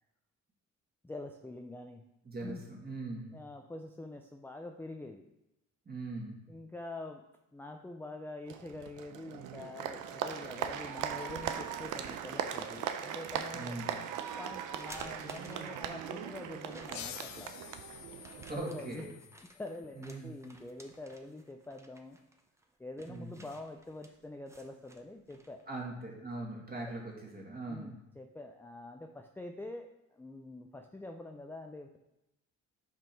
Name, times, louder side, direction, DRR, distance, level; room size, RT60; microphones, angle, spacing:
voice 1, 1.0-2.0 2.4-2.6 3.3-5.3 6.5-7.2 7.5-13.8 14.4-17.7 18.5-19.1 19.5-22.2 22.8-25.6 27.7-32.0, left 2 dB, 5° left, 4 dB, 0.4 m, -45 dB
voice 2, 2.2-3.3 5.9-6.4 13.5-13.9 18.5-19.1 20.0-20.4 23.0-23.3 25.7-28.0, right 2 dB, 30° right, -2 dB, 2.1 m, -41 dB
Applause, 8.5-18.6, right 9 dB, 85° right, 0.6 m, -39 dB
sound 1, 14.7-16.1 16.7-17.3 18.2-25.7, right 1 dB, 10° right, 0.8 m, -56 dB
sound 2, 16.9-20.2, left 11 dB, 70° left, 0.5 m, -49 dB
6.2 x 5.1 x 4.5 m, 0.90 s
cardioid pair, 90°, 30 cm